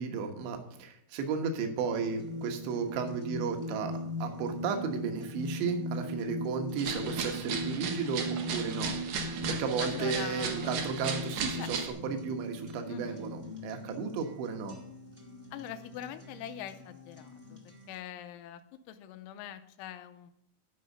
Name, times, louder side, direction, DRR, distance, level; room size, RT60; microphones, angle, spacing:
voice 1, 0.0-3.9 4.2-8.9 9.5-14.8, right 5 dB, 70° right, 5 dB, 3.3 m, -34 dB
sound 1, 1.8-13.5, left 1 dB, 50° left, 0.4 m, -38 dB
sound 2, 1.9-17.9, left 2 dB, 25° right, 1.2 m, -52 dB
sound 3, 6.8-11.9, right 6 dB, 90° right, 1.9 m, -36 dB
voice 2, 9.8-10.9 11.5-11.7 12.9-13.3 15.5-18.6 18.9-20.3, left 10 dB, 85° left, 10 dB, 3.1 m, -43 dB
12.0 x 5.4 x 6.4 m, 0.72 s
omnidirectional pair, 5.6 m